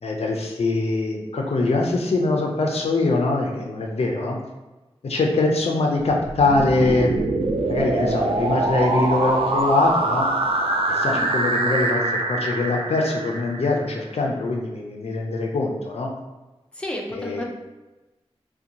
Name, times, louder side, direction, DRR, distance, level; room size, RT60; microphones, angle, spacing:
voice 1, 0.0-4.4 5.0-7.1 7.7-10.3 10.9-16.1 17.1-17.4, left 2 dB, 70° left, 0 dB, 0.4 m, -23 dB
sound 1, 6.1-14.0, right 2 dB, 60° right, 0.4 m, -24 dB
voice 2, 16.8-17.4, left 1 dB, 10° left, -1 dB, 0.5 m, -31 dB
2.5 x 2.2 x 2.8 m, 1.1 s
wide cardioid pair, 75°, 11 cm